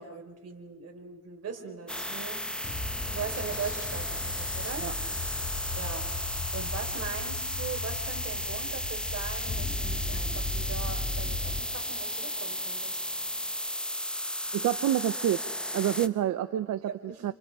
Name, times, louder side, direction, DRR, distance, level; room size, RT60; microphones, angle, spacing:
voice 1, 0.0-2.8 3.1-4.9 5.7-13.0 16.8-17.2, right 6 dB, 55° right, 3 dB, 5.1 m, -40 dB
sound 1, 1.9-16.1, left 1 dB, 5° left, 1.4 m, -34 dB
sound 2, 2.6-11.6, left 2 dB, 25° left, 1.8 m, -36 dB
voice 2, 14.5-15.5 15.7-16.9 17.2-17.3, right 12 dB, 75° right, 11 dB, 1.0 m, -27 dB
30.0 x 27.0 x 5.0 m, 1.0 s
cardioid pair, 90°, 30 cm